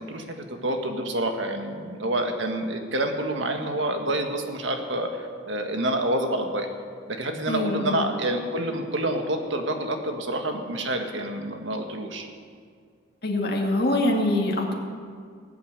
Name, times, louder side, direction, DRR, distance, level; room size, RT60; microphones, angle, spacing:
voice 1, 0.0-6.7 7.1-12.3, right 1 dB, 80° right, 4 dB, 1.8 m, -28 dB
voice 2, 7.5-8.0 13.2-14.7, left 1 dB, 50° left, -1 dB, 2.2 m, -24 dB
19.0 x 8.2 x 8.1 m, 2.1 s
head